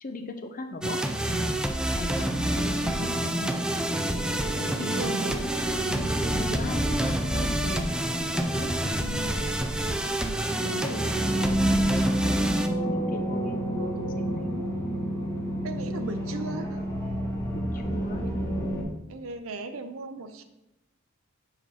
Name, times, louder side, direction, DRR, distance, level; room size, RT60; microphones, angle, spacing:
voice 1, 0.0-3.6 4.6-9.3 10.6-14.6 17.5-18.2, left 1 dB, 40° left, 6 dB, 0.6 m, -37 dB
sound 1, 0.8-12.7, right 1 dB, 5° right, 0.4 m, -28 dB
sound 2, 2.2-18.8, right 1 dB, 15° left, 1.5 m, -31 dB
voice 2, 5.0-5.3 15.6-16.9 18.1-18.3 19.1-20.4, right 3 dB, 80° right, 8 dB, 0.6 m, -36 dB
5.2 x 5.0 x 5.6 m, 0.91 s
head